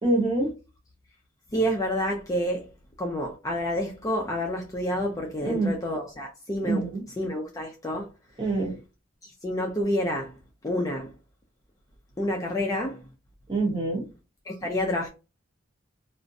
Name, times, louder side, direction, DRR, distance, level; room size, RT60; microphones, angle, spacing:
voice 1, 0.0-0.5 5.4-5.7 6.6-7.0 8.4-8.7 13.5-14.0, right 2 dB, 25° right, 0.9 m, -25 dB
voice 2, 1.5-2.7 3.0-8.1 9.2-10.4 10.6-11.1 12.2-13.1 14.5-15.1, equal, 15° left, 0.4 m, -29 dB
2.4 x 2.1 x 2.6 m
head